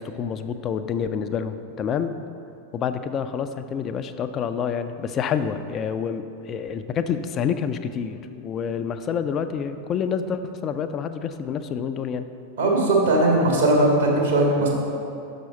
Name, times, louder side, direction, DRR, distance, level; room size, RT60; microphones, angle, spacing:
voice 1, 0.0-2.1 2.7-12.3, left 7 dB, 30° left, 9 dB, 0.4 m, -28 dB
voice 2, 12.6-14.7, right 2 dB, 65° right, -2 dB, 1.8 m, -19 dB
6.1 x 5.9 x 5.5 m, 2.7 s
figure-of-eight pair, 90°, 0 cm